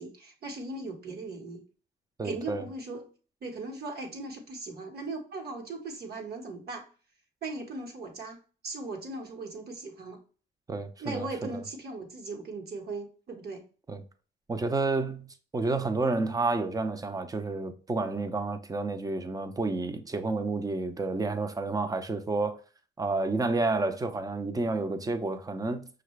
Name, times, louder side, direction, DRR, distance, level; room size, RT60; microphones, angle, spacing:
voice 1, 0.0-1.6 2.2-3.0 3.4-6.9 7.4-10.2 11.0-13.7, right 3 dB, 55° right, 1.3 m, -38 dB
voice 2, 2.2-2.6 10.7-11.3 13.9-14.0 14.5-15.3 15.5-22.6 23.0-25.9, right 3 dB, 20° right, 0.6 m, -30 dB
5.5 x 2.5 x 3.2 m
cardioid pair, 90°, 20 cm